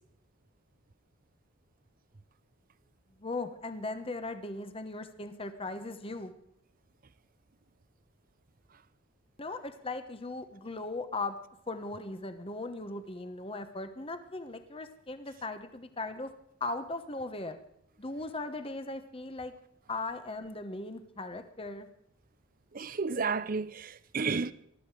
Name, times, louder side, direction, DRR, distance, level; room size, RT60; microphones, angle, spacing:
voice 1, 3.2-6.3 9.4-11.4 11.7-16.3 16.6-17.6 18.0-19.5 19.9-21.9, left 2 dB, 25° left, 1.1 m, -38 dB
voice 2, 22.7-24.5, right 4 dB, 40° right, 0.6 m, -32 dB
20.5 x 13.0 x 5.0 m
head